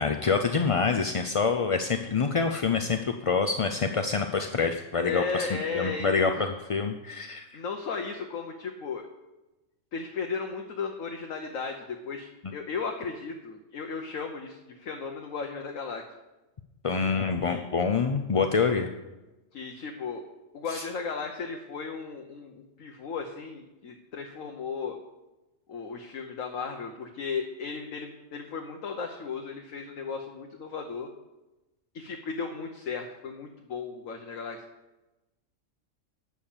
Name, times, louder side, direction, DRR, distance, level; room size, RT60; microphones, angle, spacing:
voice 1, 0.0-5.5 5.7-7.6 16.8-18.9 20.7-20.9, left 5 dB, 45° left, 6 dB, 0.4 m, -26 dB
voice 2, 5.0-6.3 7.5-9.0 9.9-16.0 17.4-17.6 19.5-20.2 20.5-25.0 25.7-31.1 31.9-34.6, left 5 dB, 90° left, 3 dB, 1.4 m, -35 dB
12.0 x 6.4 x 7.3 m, 1.0 s
omnidirectional pair, 1.3 m